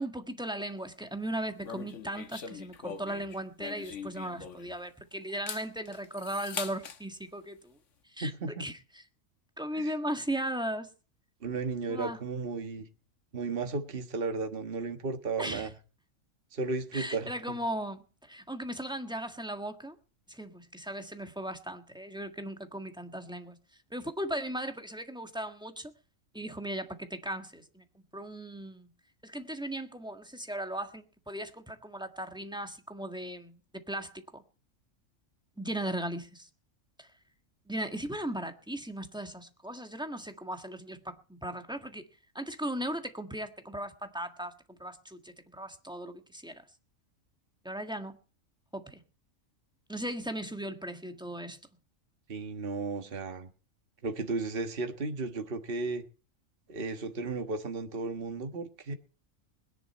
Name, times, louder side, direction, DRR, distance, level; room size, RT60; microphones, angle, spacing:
voice 1, 0.0-7.8 8.0-9.0 9.6-10.9 11.9-12.2 15.4-15.7 16.9-20.0 20.3-23.6 23.9-25.9 26.3-27.8 28.1-28.9 29.2-34.4 35.6-36.5 37.0-37.1 37.7-42.1 42.3-46.6 47.6-48.2 48.7-49.0 49.9-51.6, right 1 dB, 5° right, 1.6 m, -37 dB
sound 1, 1.6-4.9 5.3-7.0, left 6 dB, 65° left, 1.5 m, -42 dB
voice 2, 8.2-8.6 9.7-9.9 11.4-12.9 13.3-15.7 16.5-17.3 52.3-53.5 54.0-56.0 56.7-58.9, right 3 dB, 45° right, 1.6 m, -34 dB
21.0 x 10.5 x 4.3 m
omnidirectional pair, 1.4 m